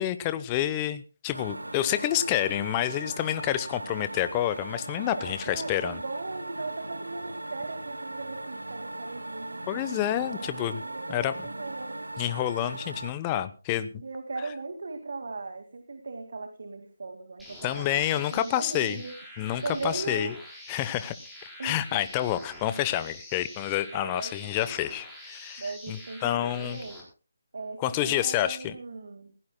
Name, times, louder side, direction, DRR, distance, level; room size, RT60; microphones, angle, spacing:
voice 1, 0.0-6.0 9.7-10.8 11.1-11.3 12.2-13.9 17.6-19.0 19.4-20.3 20.7-21.1 21.6-26.8 27.8-28.7, left 12 dB, 20° left, 13 dB, 0.9 m, -28 dB
sound 1, 1.3-13.1, right 2 dB, 85° right, 1.4 m, -39 dB
voice 2, 4.9-12.1 14.0-19.1 19.6-20.3 21.6-22.0 23.9-24.3 25.6-27.0 27.5-29.3, right 3 dB, 65° right, 6 dB, 2.1 m, -38 dB
sound 2, 17.4-27.0, left 1 dB, ahead, 4.6 m, -46 dB
20.0 x 17.0 x 2.2 m, 0.34 s
figure-of-eight pair, 150°, 0 cm